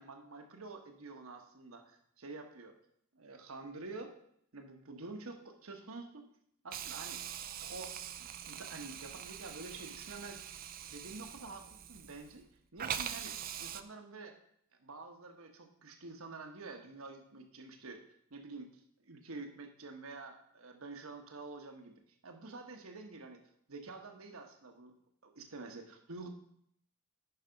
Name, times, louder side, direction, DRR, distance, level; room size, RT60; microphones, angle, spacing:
voice 1, 0.0-2.8 3.1-4.1 4.5-6.3 6.6-7.2 7.6-10.4 10.9-12.4 12.7-14.3 14.7-18.0 18.3-18.7 19.0-23.4 23.7-24.9 25.2-26.3, right 3 dB, 70° right, 5 dB, 1.2 m, -48 dB
Hiss, 6.7-12.4 12.8-13.8, right 9 dB, 40° right, 0.4 m, -43 dB
10.0 x 4.9 x 5.2 m, 0.69 s
head